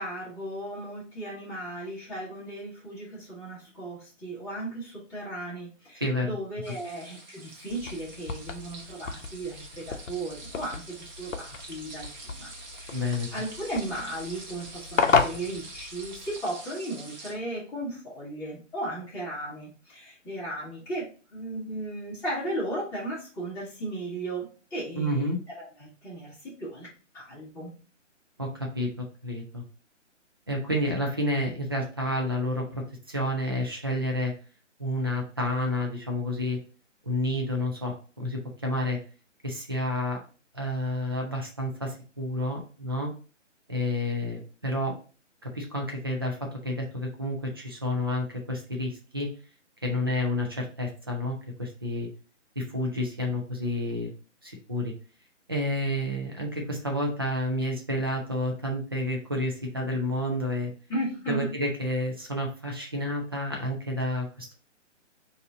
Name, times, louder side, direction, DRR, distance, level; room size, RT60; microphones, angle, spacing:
voice 1, 0.0-26.9 27.1-27.7 60.9-61.5, right 1 dB, 5° left, -9 dB, 1.2 m, -36 dB
voice 2, 6.0-6.3 12.9-13.3 25.0-25.4 28.4-28.5 28.7-29.6 30.5-32.8 33.1-34.3 34.8-36.6 37.0-39.0 39.4-40.2 40.5-43.1 43.7-44.9 45.4-46.4 46.6-49.3 49.8-52.1 52.6-54.1 54.4-54.9 55.5-60.7 61.3-64.5, left 1 dB, 20° right, 1 dB, 0.4 m, -30 dB
sound 1, 6.6-17.3, right 2 dB, 35° right, 1.0 m, -46 dB
sound 2, 7.7-16.4, left 5 dB, 90° left, 0.7 m, -32 dB
4.1 x 2.7 x 3.6 m, 0.36 s
hypercardioid pair, 155°, 38 cm